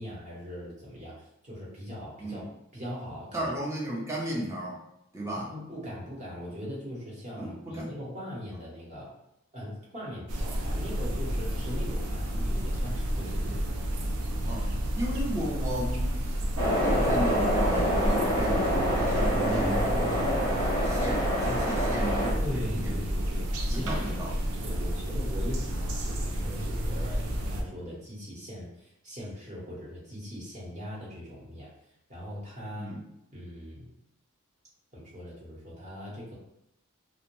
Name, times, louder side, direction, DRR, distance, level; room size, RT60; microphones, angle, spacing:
voice 1, 0.0-2.4 2.7-3.5 5.4-9.1 9.5-13.6 22.4-31.7 32.1-32.9 33.3-33.9 34.9-36.3, equal, 30° right, -6 dB, 0.9 m, -40 dB
voice 2, 3.3-4.8 5.1-5.5 7.4-7.9 12.3-12.5 13.5-13.6 14.5-14.7 15.0-20.4 20.8-23.1 23.7-24.3 32.8-33.1, equal, 15° right, -4 dB, 0.5 m, -35 dB
sound 1, 10.3-27.6, equal, 85° right, 0.4 m, -30 dB
sound 2, 16.6-22.3, equal, 65° right, 0.9 m, -27 dB
2.6 x 2.0 x 3.0 m, 0.81 s
head